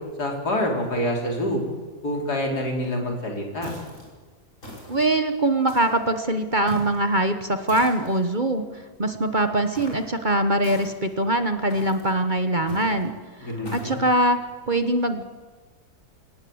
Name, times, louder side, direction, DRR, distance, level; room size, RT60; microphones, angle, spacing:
voice 1, 0.2-1.6 2.0-3.7 13.4-14.0, left 1 dB, 75° left, 1 dB, 4.5 m, -26 dB
sound 1, 3.6-4.1 4.6-5.1 5.7-6.1 6.7-7.0 7.7-8.2 9.7-10.1 10.6-11.1 11.7-12.1 12.7-13.0 13.6-14.0, left 1 dB, 50° left, 6.2 m, -40 dB
voice 2, 4.9-8.6 9.0-13.1 13.4-14.4 14.7-15.2, right 1 dB, 30° right, 7 dB, 1.3 m, -22 dB
24.0 x 18.5 x 8.0 m, 1.4 s
omnidirectional pair, 1.7 m